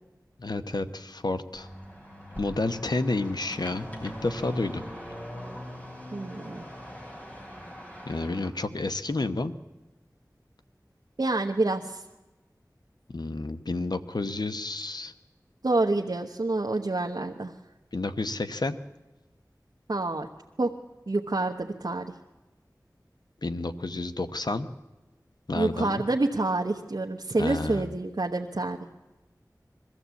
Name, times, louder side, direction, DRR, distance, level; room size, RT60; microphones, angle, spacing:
voice 1, 0.4-1.7 2.4-4.8 8.1-9.5 13.1-15.1 17.9-18.8 23.4-24.7 25.5-26.0 27.4-27.9, left 2 dB, 80° left, 10 dB, 1.0 m, -30 dB
sound 1, 1.5-8.5, equal, 20° left, 4.1 m, -42 dB
voice 2, 6.1-6.6 11.2-12.0 15.6-17.5 19.9-20.3 20.6-20.7 21.1-22.1 25.5-28.9, right 2 dB, 75° right, 1 dB, 1.1 m, -27 dB
22.0 x 14.0 x 8.3 m, 1.1 s
wide cardioid pair, 50°, 7 cm